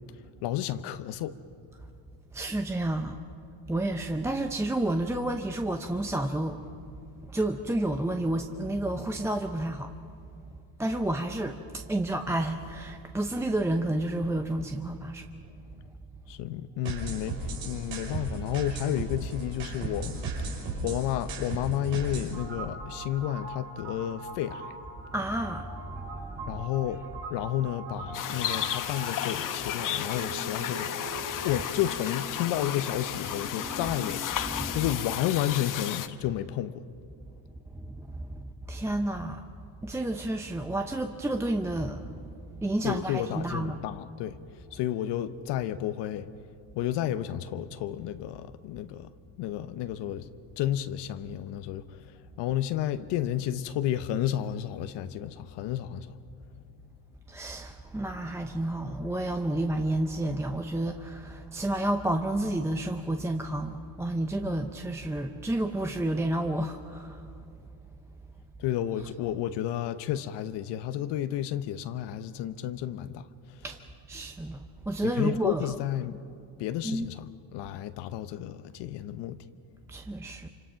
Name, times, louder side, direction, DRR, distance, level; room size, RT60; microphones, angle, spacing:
voice 1, 0.4-1.3 16.3-20.2 20.8-24.7 26.5-27.0 27.3-31.2 31.4-36.8 42.8-44.4 44.7-46.3 46.7-49.1 49.4-50.3 50.6-52.0 52.4-56.1 68.6-73.2 75.0-76.2 76.6-79.4, left 11 dB, 70° left, 1.0 m, -31 dB
voice 2, 2.3-3.2 3.7-6.6 7.3-9.9 10.8-15.3 25.1-26.6 34.5-34.8 37.7-39.5 39.8-42.3 42.6-43.8 57.3-67.3 73.6-73.8 74.1-75.8 76.8-77.1 79.9-80.5, right 1 dB, 5° right, 0.7 m, -30 dB
sound 1, 16.8-34.8, right 3 dB, 80° right, 5.3 m, -39 dB
sound 2, 28.1-36.1, left 11 dB, 45° left, 1.0 m, -33 dB
26.5 x 26.0 x 5.8 m
cardioid pair, 120°, 44 cm